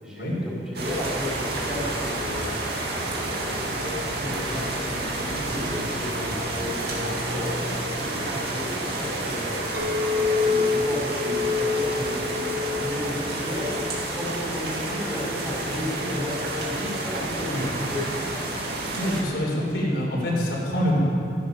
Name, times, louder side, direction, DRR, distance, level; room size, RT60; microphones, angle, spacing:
voice 1, 0.0-2.5 3.1-9.5 10.2-13.6 14.1-18.0, left 1 dB, 5° right, -6 dB, 4.2 m, -34 dB
sound 1, 0.7-19.2, right 2 dB, 65° right, 2.3 m, -30 dB
Chink clink, 9.7-15.0, left 4 dB, 85° right, 2.8 m, -28 dB
voice 2, 19.0-21.0, equal, 70° left, -4 dB, 3.6 m, -25 dB
13.5 x 12.5 x 5.7 m, 2.6 s
head